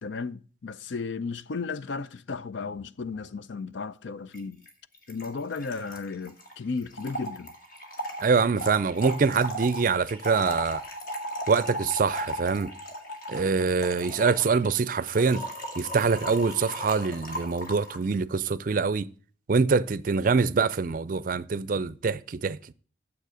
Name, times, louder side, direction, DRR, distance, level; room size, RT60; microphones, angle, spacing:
voice 1, 0.0-4.6 5.1-7.6, left 4 dB, 75° left, 0.5 m, -34 dB
Trickle dribble / Fill (with liquid), 4.3-4.4 4.7-4.8 4.9-18.0, right 1 dB, 50° left, 1.9 m, -36 dB
voice 2, 8.2-10.8 11.5-12.7 13.3-15.4 15.8-19.1 19.5-22.7, right 4 dB, 45° right, 0.4 m, -25 dB
9.3 x 7.1 x 4.9 m
head